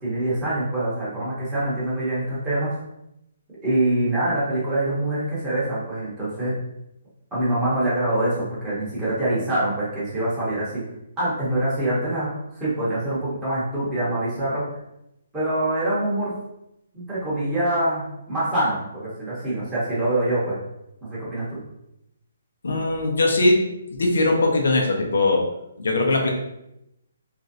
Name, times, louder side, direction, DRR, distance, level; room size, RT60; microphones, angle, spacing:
voice 1, 0.0-2.7 3.6-6.6 7.3-10.8 11.2-14.6 15.3-16.4 16.9-20.6 21.0-21.6, right 1 dB, 5° right, -11 dB, 0.8 m, -25 dB
voice 2, 22.6-23.6 23.9-25.4 25.8-26.3, left 2 dB, 85° left, 1 dB, 0.7 m, -20 dB
3.0 x 2.5 x 2.6 m, 0.85 s
hypercardioid pair, 175°, 0 cm